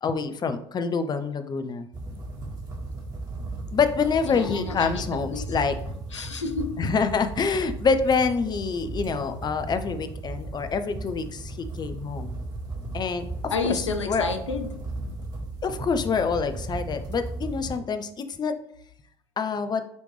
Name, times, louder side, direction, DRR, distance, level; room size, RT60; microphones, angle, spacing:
voice 1, 0.0-1.9 3.7-5.7 6.8-12.3 12.9-14.2 15.6-18.5 19.4-19.8, left 5 dB, 30° left, 9 dB, 0.7 m, -26 dB
sound 1, 1.9-17.8, right 2 dB, 25° right, 2.0 m, -36 dB
voice 2, 4.3-5.0 5.3-5.5 6.1-6.8 13.5-14.7, left 4 dB, 90° left, 6 dB, 0.6 m, -30 dB
9.2 x 3.4 x 3.3 m, 0.69 s
hypercardioid pair, 65°, 15 cm